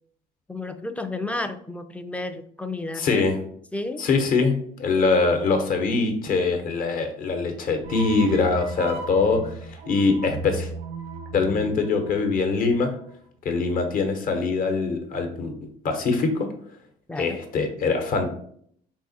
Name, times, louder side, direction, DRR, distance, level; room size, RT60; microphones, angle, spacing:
voice 1, 0.5-3.3 3.7-4.1 17.1-17.4, left 2 dB, 10° left, 8 dB, 0.3 m, -32 dB
voice 2, 3.0-3.4 4.0-10.7 11.3-12.9 13.4-16.5 17.2-18.3, left 4 dB, 55° left, 5 dB, 0.9 m, -23 dB
sound 1, 7.8-13.1, right 3 dB, 90° right, 0.8 m, -36 dB
3.5 x 2.8 x 4.1 m, 0.63 s
cardioid pair, 110°, 17 cm